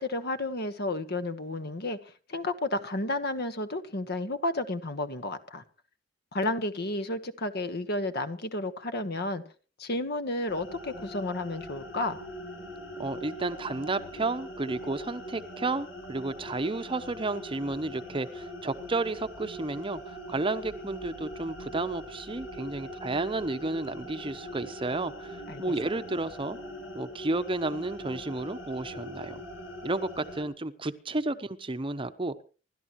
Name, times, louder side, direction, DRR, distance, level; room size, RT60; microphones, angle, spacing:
voice 1, 0.0-2.0 2.3-5.6 6.3-9.4 9.8-12.2 25.5-25.6, left 2 dB, 60° left, 10 dB, 1.4 m, -32 dB
sound 1, 10.5-30.4, equal, 80° left, 4.3 m, -42 dB
voice 2, 13.0-26.6 26.9-29.4 29.8-32.4, right 2 dB, 25° right, 11 dB, 0.8 m, -32 dB
27.5 x 12.5 x 3.1 m, 0.36 s
head